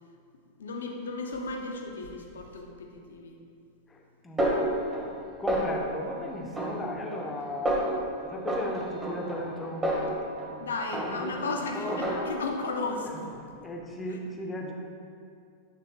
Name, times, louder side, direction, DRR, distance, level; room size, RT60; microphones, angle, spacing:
voice 1, 0.6-3.4 10.6-13.4, left 3 dB, 65° left, 2 dB, 0.8 m, -34 dB
voice 2, 3.9-4.5 5.4-12.2 13.6-14.7, left 1 dB, 15° left, 0 dB, 0.9 m, -37 dB
Snare drum, 4.4-5.2 5.5-6.0 6.6-7.3 7.7-8.0 8.5-10.6 10.9-11.4 11.9-12.6, right 1 dB, 15° right, 1.3 m, -30 dB
8.7 x 3.6 x 4.2 m, 2.4 s
figure-of-eight pair, 90°, 0 cm